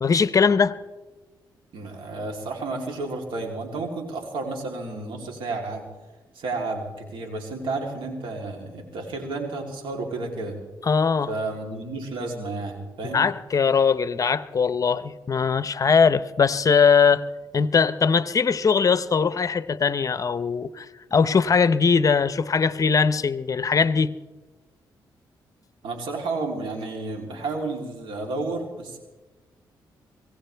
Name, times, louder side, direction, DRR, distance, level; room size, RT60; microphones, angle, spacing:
voice 1, 0.0-0.8 10.8-11.3 13.0-17.2 17.5-20.9 21.1-24.1, left 5 dB, 45° left, 0.7 m, -20 dB
voice 2, 1.7-5.8 6.3-10.6 11.3-13.3 25.8-29.0, right 3 dB, 85° right, 3.3 m, -31 dB
24.5 x 17.5 x 3.4 m
cardioid pair, 70°, 8 cm